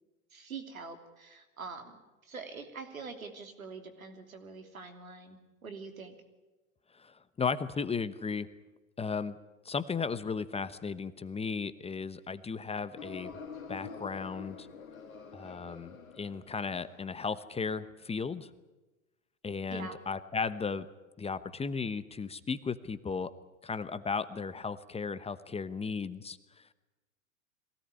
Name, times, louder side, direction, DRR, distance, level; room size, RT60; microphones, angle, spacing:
voice 1, 0.3-6.1 19.7-20.0, right 4 dB, 85° right, 6 dB, 3.1 m, -45 dB
voice 2, 6.9-8.5 9.0-9.4 9.6-13.4 13.7-14.7 15.3-18.5 19.4-20.9 21.2-23.3 23.6-26.7, left 5 dB, 15° left, 13 dB, 0.9 m, -35 dB
sound 1, 13.0-17.3, left 5 dB, 85° left, 2.2 m, -46 dB
22.5 x 17.5 x 9.8 m, 1.1 s
hypercardioid pair, 95°, 40 cm